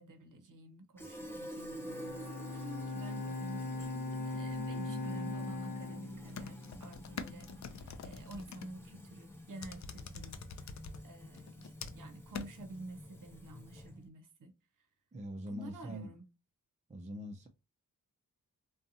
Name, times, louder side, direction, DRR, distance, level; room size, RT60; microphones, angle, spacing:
voice 1, 0.0-3.9 4.3-14.5 15.4-16.3, right 2 dB, 60° right, 0.7 m, -50 dB
Fill (with liquid), 1.0-14.1, left 1 dB, 5° left, 0.7 m, -49 dB
Bowed string instrument, 1.7-7.1, left 2 dB, 70° left, 0.8 m, -40 dB
sound 1, 6.3-8.7 9.6-11.0 11.3-12.1 12.3-12.5, left 5 dB, 50° left, 0.5 m, -45 dB
voice 2, 15.1-16.1 16.9-17.5, equal, 20° right, 0.4 m, -43 dB
2.6 x 2.3 x 2.6 m
cardioid pair, 45°, 36 cm